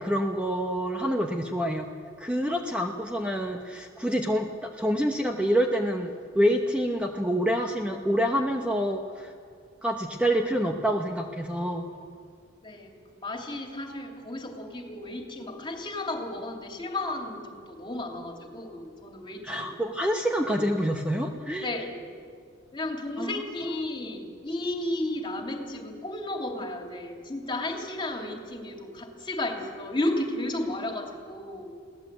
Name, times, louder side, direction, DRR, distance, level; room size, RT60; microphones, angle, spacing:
voice 1, 0.0-1.9 2.2-9.3 9.8-11.9 19.4-21.7 23.2-23.8, equal, 5° right, 2 dB, 1.0 m, -27 dB
voice 2, 12.6-19.7 21.6-22.1 22.7-31.7, left 1 dB, 25° left, 2 dB, 2.9 m, -33 dB
22.5 x 17.5 x 8.2 m, 2.1 s
head